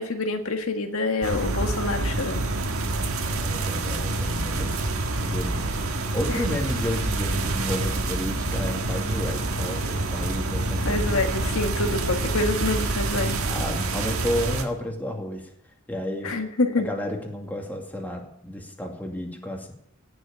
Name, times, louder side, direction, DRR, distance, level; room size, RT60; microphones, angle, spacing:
voice 1, 0.0-2.5 6.3-6.5 10.8-13.4 16.2-16.9, left 2 dB, 80° left, 5 dB, 1.7 m, -27 dB
sound 1, 1.2-14.6, right 2 dB, 80° right, 1.7 m, -27 dB
voice 2, 3.3-4.8 5.2-5.7 6.1-11.6 12.2-12.4 13.4-15.5 15.9-16.4 16.8-19.7, left 1 dB, 10° left, 1 dB, 2.4 m, -32 dB
18.0 x 6.4 x 8.9 m, 0.73 s
head